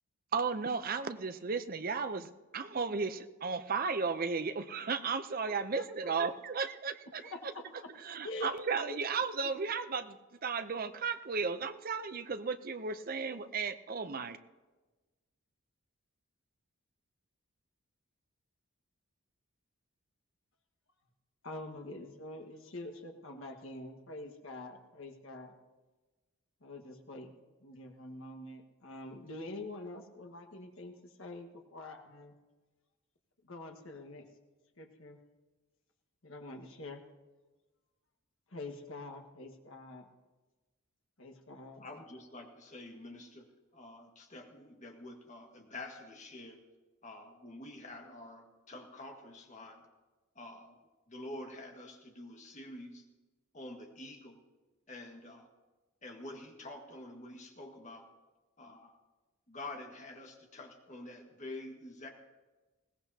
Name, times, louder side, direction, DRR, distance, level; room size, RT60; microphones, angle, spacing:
voice 1, 0.3-7.3 8.0-10.2 10.4-14.4, right 5 dB, 40° right, 11 dB, 0.6 m, -34 dB
voice 2, 5.4-6.1 7.2-7.6 8.2-8.5 8.9-9.0 9.4-9.5 21.4-25.5 26.6-27.3 27.6-32.3 33.4-34.3 34.8-35.2 36.2-37.0 38.5-40.1 41.2-41.9, left 2 dB, 65° left, 3 dB, 1.6 m, -45 dB
voice 3, 41.8-43.5 43.7-46.6 47.0-49.8 50.3-50.8 51.1-53.0 53.5-54.4 54.9-55.5 56.0-58.1 58.6-59.0 59.5-62.1, left 2 dB, 35° left, 2 dB, 1.7 m, -47 dB
21.0 x 17.0 x 2.8 m, 1.2 s
head